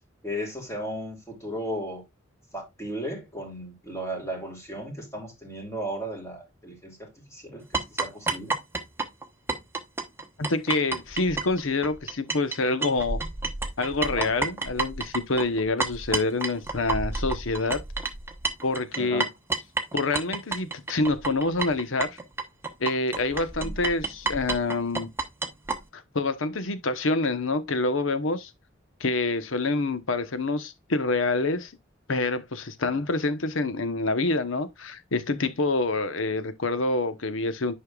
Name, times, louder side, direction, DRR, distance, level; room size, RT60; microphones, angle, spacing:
voice 1, 0.2-2.0 2.5-8.6 14.1-14.3 19.0-19.3 23.6-23.7 32.9-33.0, equal, 15° left, 2.6 m, -35 dB
sound 1, 7.7-12.6 12.8-25.8, right 3 dB, 10° right, 1.0 m, -30 dB
voice 2, 10.4-13.2 13.8-17.8 18.6-19.3 19.9-22.2 22.8-25.1 25.9-28.5 29.0-31.7 32.1-37.7, left 3 dB, 75° left, 1.0 m, -27 dB
9.9 x 5.6 x 2.3 m
head